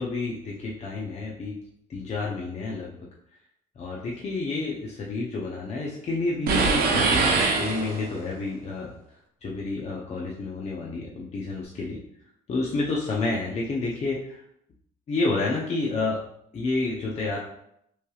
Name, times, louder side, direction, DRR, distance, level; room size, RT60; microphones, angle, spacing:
voice 1, 0.0-1.6 1.9-3.0 3.8-8.9 9.4-12.0 12.5-14.4 15.1-16.2 16.5-17.4, left 3 dB, 40° left, -3 dB, 0.7 m, -29 dB
sound 1, 6.5-8.3, right 4 dB, 60° right, 0.8 m, -23 dB
5.8 x 3.3 x 2.4 m, 0.75 s
cardioid pair, 110°, 17 cm